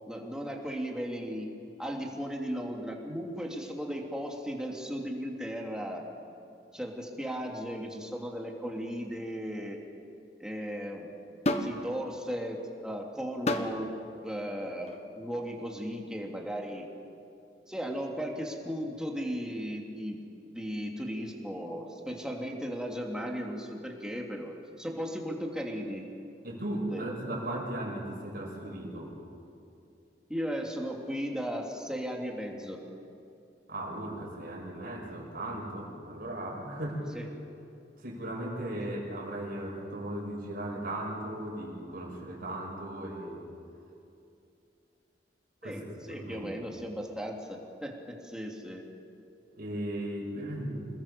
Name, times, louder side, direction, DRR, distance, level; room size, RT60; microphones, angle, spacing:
voice 1, 0.1-1.5 1.8-6.0 6.7-9.8 10.4-11.1 11.6-13.9 14.2-14.9 15.2-16.8 17.7-20.2 20.5-26.0 26.9-27.0 30.3-32.8 37.1-37.3 45.6-48.8, equal, 5° right, 0 dB, 2.8 m, -36 dB
sound 1, 11.4-11.8 13.5-13.8 14.8-15.0, left 1 dB, 40° left, 1.4 m, -29 dB
voice 2, 26.4-29.1 33.7-37.2 38.0-43.4 45.6-46.6 49.6-50.9, right 1 dB, 60° right, -1 dB, 6.3 m, -37 dB
27.5 x 20.5 x 7.0 m, 2.7 s
head